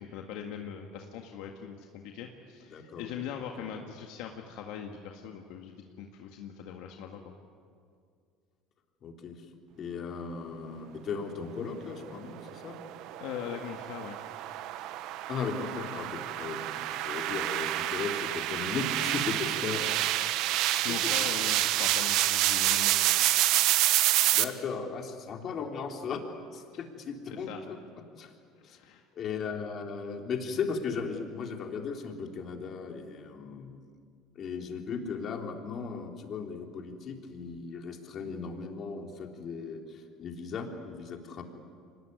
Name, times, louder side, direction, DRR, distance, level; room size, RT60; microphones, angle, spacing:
voice 1, 0.0-7.2 13.2-14.2 19.4-20.4 20.8-23.2 27.3-27.6 28.6-29.0, left 8 dB, 75° left, 2 dB, 1.8 m, -41 dB
voice 2, 2.7-3.1 3.4-3.7 9.0-9.4 9.8-12.8 15.3-20.5 21.0-21.1 24.3-26.2 26.5-27.8 28.2-28.3 28.6-28.8 29.1-33.8 34.3-41.4, left 5 dB, 45° left, 3 dB, 3.4 m, -37 dB
sound 1, 12.4-24.4, right 14 dB, 70° right, 1.1 m, -28 dB
24.5 x 19.5 x 9.6 m, 2.2 s
supercardioid pair, 105°, 0 cm